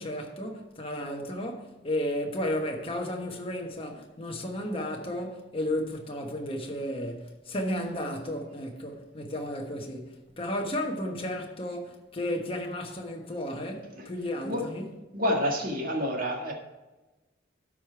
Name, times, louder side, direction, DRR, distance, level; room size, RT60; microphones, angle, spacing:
voice 1, 0.0-14.9, left 1 dB, 30° left, 1.2 m, -33 dB
voice 2, 15.1-16.5, left 1 dB, 50° right, 1.9 m, -28 dB
12.5 x 5.0 x 4.6 m
head